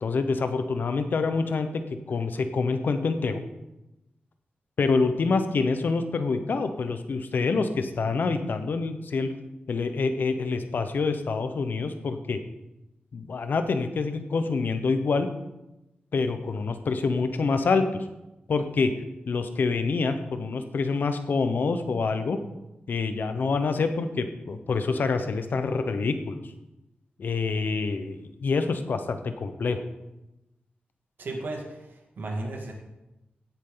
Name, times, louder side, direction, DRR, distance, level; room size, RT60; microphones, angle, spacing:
voice 1, 0.0-1.8 2.1-3.4 4.8-9.3 9.7-12.4 13.1-15.3 16.1-17.9 18.5-18.9 19.3-22.4 22.9-26.4 27.2-29.8, left 4 dB, 60° left, 8 dB, 1.0 m, -26 dB
voice 2, 31.2-32.7, right 2 dB, 65° right, 1 dB, 2.3 m, -34 dB
17.0 x 7.3 x 3.9 m, 0.96 s
wide cardioid pair, 125°, 4 cm